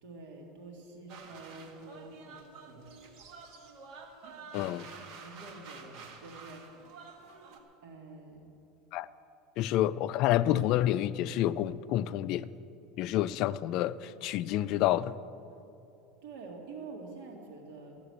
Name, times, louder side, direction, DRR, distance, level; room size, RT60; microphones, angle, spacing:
voice 1, 0.0-3.1 4.2-4.9 5.2-6.8 7.8-8.4 16.2-18.0, right 3 dB, 70° right, 1 dB, 2.2 m, -47 dB
sound 1, 1.1-7.6, right 4 dB, 50° right, 1.6 m, -49 dB
voice 2, 4.5-4.9 8.9-9.1 9.6-12.5 13.0-15.2, left 13 dB, 50° left, 15 dB, 0.4 m, -28 dB
14.0 x 6.8 x 9.5 m, 2.8 s
supercardioid pair, 150°, 0 cm